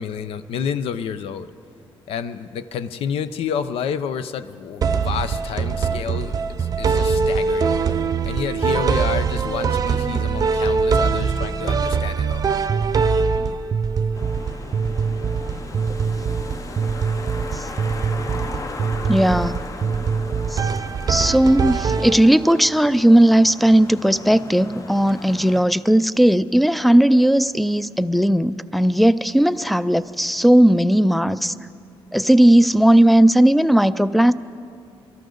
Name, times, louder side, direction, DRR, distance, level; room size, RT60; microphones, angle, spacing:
voice 1, 0.0-1.5 2.1-7.7 8.2-12.4, left 7 dB, 75° left, 12 dB, 0.6 m, -29 dB
sound 1, 4.8-22.6, right 5 dB, 40° right, 0.6 m, -23 dB
sound 2, 14.1-25.6, left 3 dB, 35° left, 0.8 m, -37 dB
voice 2, 19.1-19.6 20.5-20.7 21.1-31.5 32.1-34.3, right 1 dB, ahead, 15 dB, 0.4 m, -16 dB
23.5 x 13.0 x 3.9 m, 2.4 s
cardioid pair, 105°, 10 cm